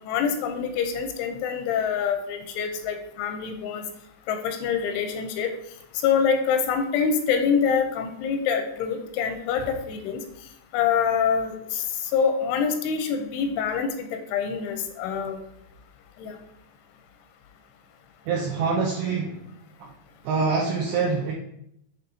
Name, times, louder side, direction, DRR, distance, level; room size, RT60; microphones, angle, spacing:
voice 1, 0.1-3.8 4.3-5.5 5.9-10.2 10.7-11.8 12.1-15.4 16.2-16.4, left 6 dB, 85° left, 5 dB, 3.0 m, -25 dB
voice 2, 18.3-19.4 19.8-19.9 20.2-21.3, right 4 dB, 90° right, -2 dB, 2.3 m, -25 dB
8.4 x 3.9 x 4.1 m, 0.75 s
omnidirectional pair, 5.6 m